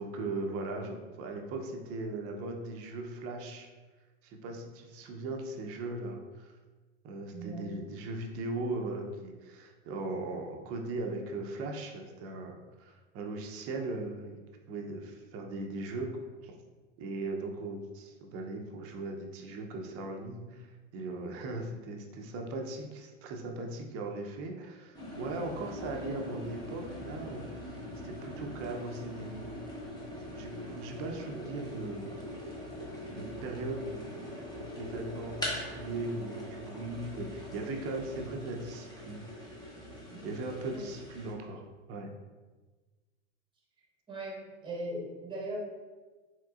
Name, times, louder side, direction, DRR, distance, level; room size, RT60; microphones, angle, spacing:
voice 1, 0.0-3.7 4.2-6.5 7.0-14.4 14.7-16.5 17.0-20.7 20.9-29.6 30.3-32.1 33.1-34.4 34.8-39.2 40.2-41.6 41.9-42.1, right 2 dB, 40° right, 2 dB, 0.7 m, -38 dB
voice 2, 7.3-7.7 40.1-40.3 40.7-40.8 44.1-45.6, right 1 dB, 15° right, -2 dB, 1.1 m, -39 dB
sound 1, 24.9-41.3, equal, 10° left, 0.9 m, -42 dB
4.6 x 3.7 x 2.4 m, 1.3 s
hypercardioid pair, 110°, 37 cm